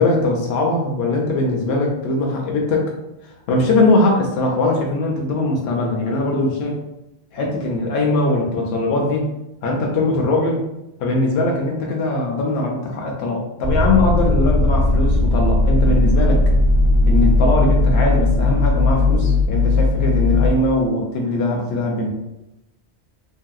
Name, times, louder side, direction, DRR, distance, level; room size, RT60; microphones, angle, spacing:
voice 1, 0.0-2.9 3.2-6.8 7.3-9.3 9.6-10.6 11.0-16.4 17.1-22.1, left 2 dB, 75° left, -1 dB, 0.8 m, -20 dB
sound 1, 13.6-20.5, left 2 dB, 40° right, 0.4 m, -17 dB
3.1 x 2.6 x 2.3 m, 0.90 s
omnidirectional pair, 1.1 m